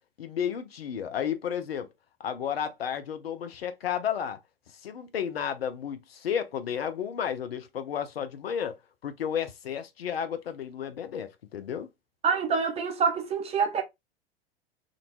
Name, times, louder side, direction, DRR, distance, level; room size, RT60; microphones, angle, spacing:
voice 1, 0.2-1.9 2.2-4.4 4.8-8.7 9.0-11.9, left 8 dB, 80° left, 0.6 m, -32 dB
voice 2, 12.2-13.8, right 5 dB, 20° right, 0.6 m, -26 dB
2.6 x 2.2 x 2.8 m
figure-of-eight pair, 90°, 30 cm